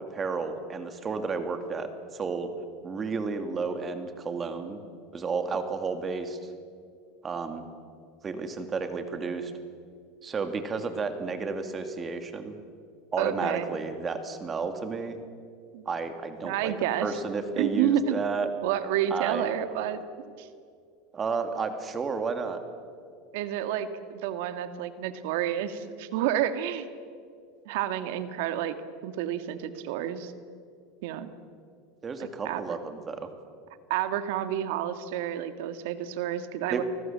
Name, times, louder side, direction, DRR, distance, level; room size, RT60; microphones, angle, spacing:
voice 1, 0.1-2.5 2.8-4.8 5.1-6.4 7.2-7.7 8.2-9.5 10.2-12.6 13.1-15.2 15.9-16.7 17.0-18.5 19.1-19.5 21.1-22.6 32.0-33.3 36.7-36.8, right 4 dB, 25° right, 7 dB, 2.7 m, -32 dB
voice 2, 13.2-13.8 15.7-15.8 16.4-17.2 17.6-18.2 18.6-20.5 23.3-26.9 27.7-28.7 29.0-30.3 31.0-31.3 32.2-32.7 33.9-36.8, right 10 dB, 70° right, 10 dB, 1.8 m, -30 dB
30.0 x 19.5 x 7.6 m, 2.3 s
supercardioid pair, 115°, 0 cm